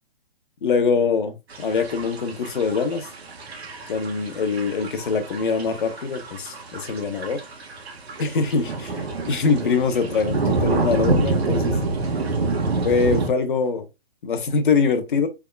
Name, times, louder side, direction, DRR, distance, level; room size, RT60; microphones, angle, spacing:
voice 1, 0.6-3.1 3.9-7.4 8.2-11.7 12.8-13.8 14.2-15.3, left 5 dB, 55° left, 1.0 m, -23 dB
sound 1, 1.5-13.3, right 3 dB, 85° right, 1.5 m, -27 dB
4.8 x 3.6 x 2.3 m
hypercardioid pair, 175°, 31 cm